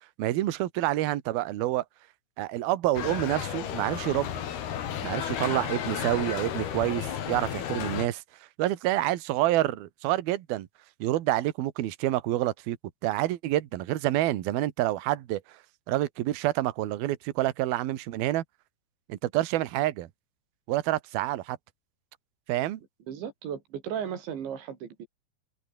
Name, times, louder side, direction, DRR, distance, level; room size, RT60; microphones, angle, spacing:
voice 1, 0.2-1.8 2.4-4.4 5.0-8.2 8.6-10.7 11.0-12.8 13.0-15.4 15.9-18.4 19.1-20.1 20.7-21.6 22.5-22.8, right 15 dB, 65° right, 3.0 m, -28 dB
sound 1, 3.0-8.1, left 9 dB, 65° left, 4.2 m, -33 dB
voice 2, 23.1-25.1, right 8 dB, 90° right, 5.8 m, -35 dB
open air
omnidirectional pair, 5.0 m